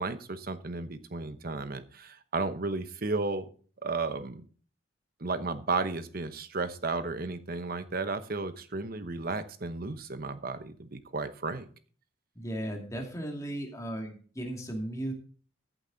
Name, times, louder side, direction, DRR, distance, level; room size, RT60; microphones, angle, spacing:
voice 1, 0.0-3.5 3.8-4.4 5.2-11.7, right 3 dB, 50° right, 11 dB, 1.0 m, -33 dB
voice 2, 12.4-15.1, right 1 dB, 15° left, 1 dB, 2.4 m, -36 dB
14.5 x 8.1 x 4.0 m, 0.43 s
head